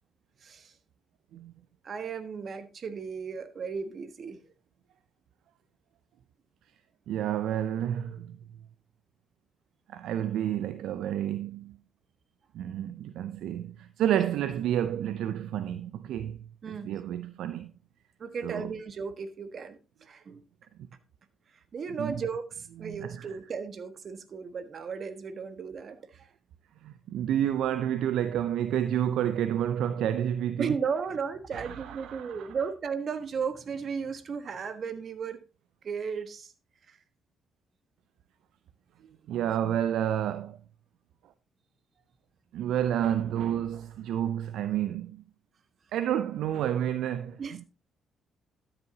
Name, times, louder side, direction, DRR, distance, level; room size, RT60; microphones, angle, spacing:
voice 1, 0.4-0.7 1.8-4.4 16.6-16.9 18.2-20.4 21.7-26.3 30.6-35.4 35.8-36.5 36.9-37.0 47.4-47.6, right 6 dB, 55° right, 1.3 m, -35 dB
voice 2, 7.1-8.4 9.9-11.8 12.5-16.4 16.7-17.7 18.4-18.7 22.0-22.2 22.8-23.3 26.8-30.8 31.5-32.5 39.3-40.6 42.5-45.2 45.9-47.6, right 10 dB, 75° right, 0.5 m, -30 dB
13.0 x 8.0 x 2.8 m
hypercardioid pair, 50°, 0 cm